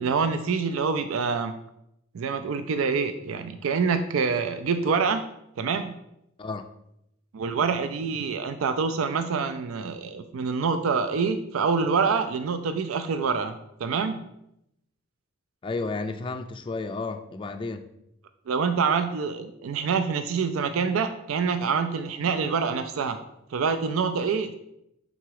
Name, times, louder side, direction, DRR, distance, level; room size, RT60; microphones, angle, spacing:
voice 1, 0.0-1.5 2.1-5.3 5.6-5.9 7.3-13.5 13.8-14.2 18.5-23.2 23.5-24.6, right 5 dB, 90° right, 9 dB, 0.4 m, -26 dB
voice 2, 15.6-17.9, left 3 dB, 25° left, 7 dB, 0.3 m, -32 dB
5.8 x 3.9 x 4.7 m, 0.81 s
head